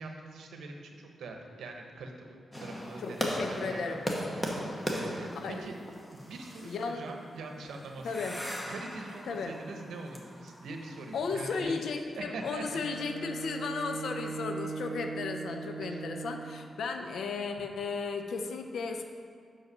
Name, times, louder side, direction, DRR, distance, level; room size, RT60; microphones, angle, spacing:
voice 1, 0.0-4.0 4.8-5.8 6.1-8.3 8.7-11.8 12.2-12.6 15.8-16.0, right 3 dB, 90° right, 3 dB, 0.8 m, -43 dB
sound 1, 2.5-11.6, equal, 15° left, 1.0 m, -39 dB
voice 2, 3.0-4.0 5.4-5.6 6.6-7.0 8.0-8.4 9.3-9.5 11.1-19.0, left 4 dB, 80° left, 5 dB, 0.6 m, -35 dB
Bowed string instrument, 12.6-16.8, right 4 dB, 50° right, 2.0 m, -39 dB
5.7 x 5.5 x 6.0 m, 2.1 s
cardioid pair, 100°, 0 cm